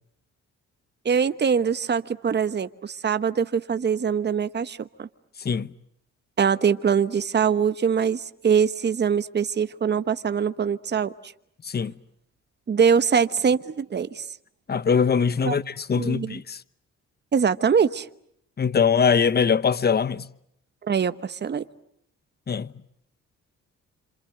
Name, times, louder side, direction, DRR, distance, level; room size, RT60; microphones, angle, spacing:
voice 1, 1.0-5.1 6.4-11.3 12.7-14.3 15.4-15.6 16.0-16.4 17.3-18.1 20.8-21.6, right 7 dB, 35° right, 1.1 m, -23 dB
voice 2, 14.7-16.6 18.6-20.3 22.5-22.7, left 6 dB, 30° left, 1.0 m, -22 dB
27.5 x 27.0 x 7.8 m
cardioid pair, 90°, 30 cm